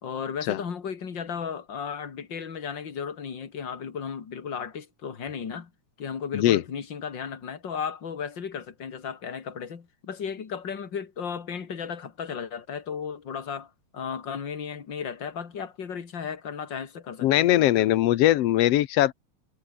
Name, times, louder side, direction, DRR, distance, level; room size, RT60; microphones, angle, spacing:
voice 1, 0.0-5.7 6.0-18.0, left 6 dB, 35° left, 2.5 m, -35 dB
voice 2, 17.2-19.1, left 14 dB, 85° left, 1.3 m, -21 dB
omnidirectional pair, 4.0 m